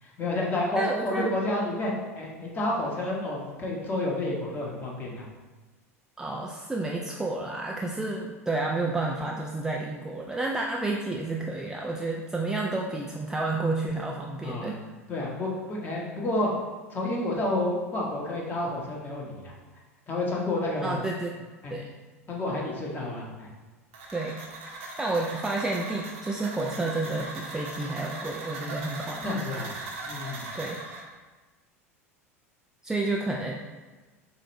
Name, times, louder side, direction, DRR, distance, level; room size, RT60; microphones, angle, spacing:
voice 1, 0.0-5.2 14.4-14.7 15.1-16.5 16.9-19.5 20.1-21.0 21.6-21.7 22.3-23.5 29.2-29.7 30.0-30.4, left 1 dB, 25° left, -3 dB, 1.1 m, -30 dB
voice 2, 0.7-1.3 6.2-14.8 20.8-21.3 21.7-21.9 24.1-24.4 25.0-29.4 30.6-30.8 32.8-33.6, right 2 dB, 5° right, -1 dB, 0.4 m, -30 dB
sound 1, 23.9-31.0, right 2 dB, 60° right, 0.9 m, -39 dB
6.8 x 2.5 x 3.0 m, 1.3 s
figure-of-eight pair, 80°, 8 cm